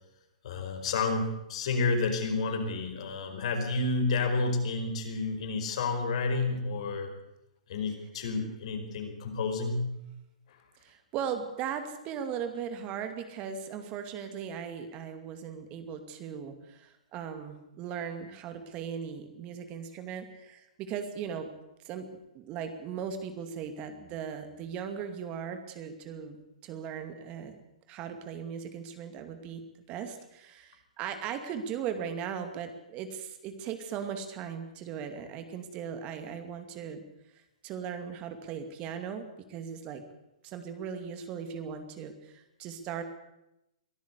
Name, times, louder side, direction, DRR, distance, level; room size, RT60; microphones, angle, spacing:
voice 1, 0.4-7.1 7.7-9.9, left 3 dB, 55° left, 5 dB, 5.0 m, -30 dB
voice 2, 10.8-21.5 21.8-22.1 22.3-26.4 26.6-27.6 27.9-37.0 37.6-40.0 40.4-43.0, right 7 dB, 30° right, 8 dB, 2.4 m, -38 dB
23.0 x 13.5 x 8.3 m, 0.88 s
hypercardioid pair, 135°, 4 cm